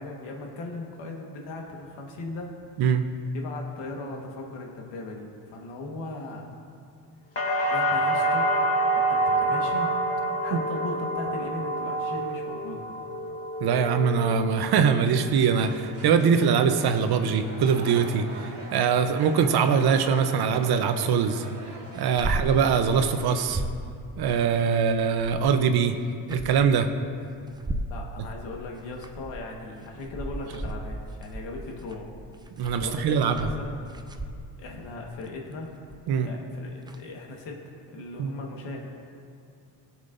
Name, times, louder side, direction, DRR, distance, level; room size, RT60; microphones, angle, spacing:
voice 1, 0.0-2.5 3.3-6.5 7.6-8.5 8.9-9.9 10.4-12.9 27.9-32.1 32.8-33.8 34.6-35.7 36.2-38.8, left 2 dB, 90° left, 0 dB, 1.5 m, -38 dB
sound 1, 7.4-15.3 15.6-16.3, right 1 dB, 35° left, 1.5 m, -27 dB
voice 2, 13.6-21.5 21.9-23.6 24.2-26.0 26.3-26.9 32.6-33.5 36.1-36.3 38.2-38.3, right 6 dB, 60° right, 8 dB, 0.8 m, -23 dB
sound 2, 15.5-23.6, right 2 dB, 35° right, 2.2 m, -42 dB
sound 3, 22.0-22.6 22.9-23.0 23.3-23.8 25.0-25.6 26.1-26.8 27.5-28.0 28.8-29.5 29.9-34.6 35.9-36.2 36.9-37.0, right 1 dB, 10° right, 0.5 m, -35 dB
17.5 x 7.3 x 2.6 m, 2.3 s
cardioid pair, 90°, 42 cm